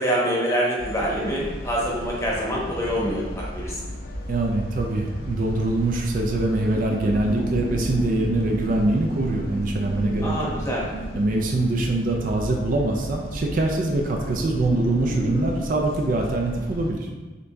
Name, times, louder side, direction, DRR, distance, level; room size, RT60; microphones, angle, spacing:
voice 1, 0.0-3.8 10.2-10.8, equal, 15° left, -5 dB, 0.8 m, -25 dB
sound 1, 0.8-16.9, equal, 50° left, 0.4 m, -35 dB
voice 2, 4.3-10.5 11.2-17.1, right 2 dB, 45° right, 1 dB, 0.3 m, -24 dB
sound 2, 6.6-15.6, right 1 dB, 90° right, 0.8 m, -34 dB
6.6 x 2.6 x 2.2 m, 1.3 s
head